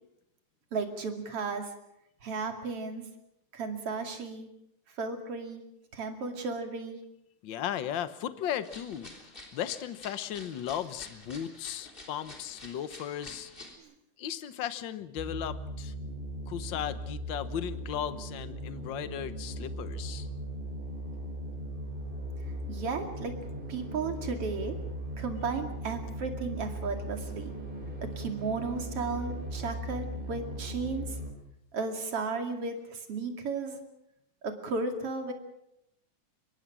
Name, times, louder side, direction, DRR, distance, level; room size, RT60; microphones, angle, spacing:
voice 1, 0.7-1.7 2.2-3.0 3.5-4.5 5.0-5.6 5.9-7.0 13.8-13.9 22.7-23.3 23.7-24.7 25.2-27.5 28.2-31.2 31.7-33.8 34.4-35.3, right 4 dB, 50° right, 5 dB, 3.3 m, -34 dB
voice 2, 7.4-9.1 9.5-13.5 14.2-15.9 16.5-20.3, left 10 dB, 65° left, 12 dB, 1.2 m, -36 dB
sound 1, 8.6-13.8, left 1 dB, 15° left, 3.4 m, -49 dB
sound 2, 15.2-31.3, equal, 15° right, 3.6 m, -38 dB
25.0 x 21.5 x 6.2 m, 0.79 s
omnidirectional pair, 3.5 m